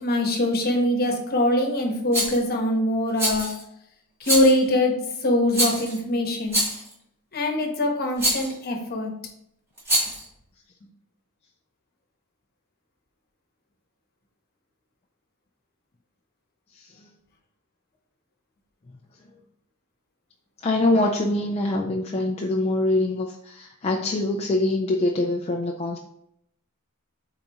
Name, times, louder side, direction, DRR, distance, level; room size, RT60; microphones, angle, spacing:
voice 1, 0.0-3.6 4.2-6.6 7.3-9.1, left 1 dB, 45° left, 2 dB, 1.1 m, -23 dB
Rattle, 2.1-2.4 3.2-3.6 4.2-4.6 5.5-6.0 6.5-6.9 8.2-8.5 9.8-10.2, right 1 dB, 10° right, 1.9 m, -24 dB
voice 2, 16.7-17.1 20.6-26.0, left 2 dB, 30° left, 2 dB, 0.4 m, -24 dB
8.1 x 3.9 x 3.0 m, 0.74 s
head